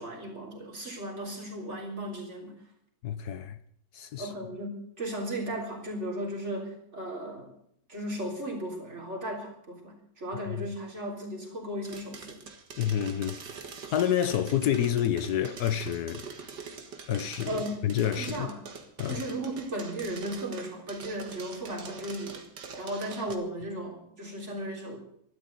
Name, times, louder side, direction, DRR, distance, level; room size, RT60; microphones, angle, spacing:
voice 1, 0.0-2.5 4.2-7.5 7.9-12.4 17.5-17.9 18.2-18.5 19.1-22.4 22.7-25.0, right 1 dB, 40° right, 4.1 m, -36 dB
voice 2, 3.0-3.6 3.9-4.3 10.5-10.6 12.8-13.4 13.9-16.3 17.1-18.5 19.0-19.2, left 10 dB, 70° left, 1.2 m, -28 dB
sound 1, 11.8-23.3, right 5 dB, 75° right, 2.3 m, -44 dB
13.0 x 12.0 x 8.1 m
omnidirectional pair, 1.8 m